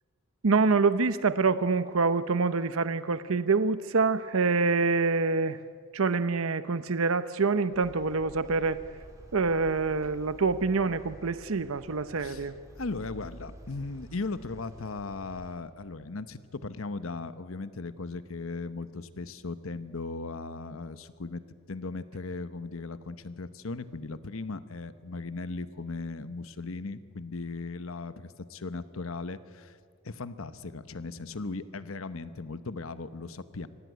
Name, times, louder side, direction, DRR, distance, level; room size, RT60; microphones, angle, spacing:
voice 1, 0.4-5.6 5.9-8.8 9.3-12.5, right 4 dB, 80° right, 13 dB, 0.8 m, -26 dB
sound 1, 7.7-15.5, equal, 15° right, 3.7 m, -49 dB
voice 2, 12.8-21.4 21.7-29.8 30.0-33.7, left 3 dB, 80° left, 12 dB, 1.0 m, -37 dB
24.5 x 17.5 x 9.4 m, 2.1 s
head